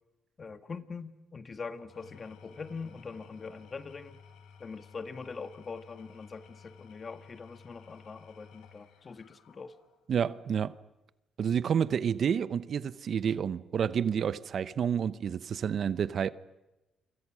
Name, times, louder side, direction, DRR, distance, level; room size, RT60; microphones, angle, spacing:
voice 1, 0.4-4.2 4.6-9.7, left 4 dB, 35° left, 1.7 m, -43 dB
Engine / Tools, 1.8-10.1, left 6 dB, 85° left, 2.9 m, -55 dB
voice 2, 10.1-10.7 11.4-16.3, right 8 dB, 55° right, 0.8 m, -29 dB
29.0 x 25.5 x 6.3 m
cardioid pair, 90°, 0 cm